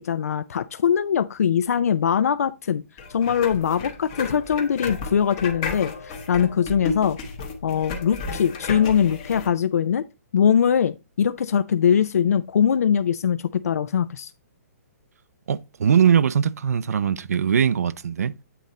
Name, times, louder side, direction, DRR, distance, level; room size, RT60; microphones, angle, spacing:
voice 1, 0.0-2.8 3.1-7.2 7.6-10.0 10.3-14.3, left 8 dB, 70° left, 0.4 m, -22 dB
sound 1, 3.0-9.5, left 4 dB, 20° left, 0.9 m, -33 dB
voice 2, 15.5-18.3, right 8 dB, 75° right, 0.5 m, -21 dB
8.3 x 3.9 x 4.1 m
hypercardioid pair, 180°, 9 cm